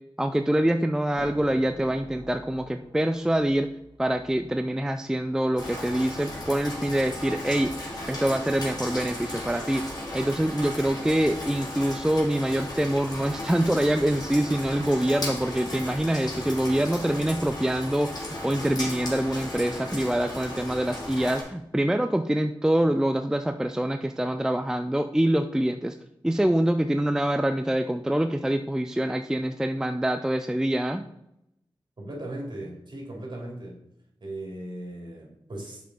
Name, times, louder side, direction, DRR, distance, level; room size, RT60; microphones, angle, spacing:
voice 1, 0.2-3.7 4.0-7.7 8.1-9.8 10.1-26.0 26.2-31.0, right 1 dB, 5° right, 8 dB, 0.4 m, -25 dB
sound 1, 1.2-6.8, right 1 dB, 75° right, 1.8 m, -48 dB
Rain, 5.6-21.4, left 1 dB, 40° left, 2.8 m, -36 dB
voice 2, 32.0-33.8 34.2-35.8, right 1 dB, 50° right, -2 dB, 3.0 m, -37 dB
7.7 x 5.3 x 4.2 m, 0.82 s
wide cardioid pair, 80°, 10 cm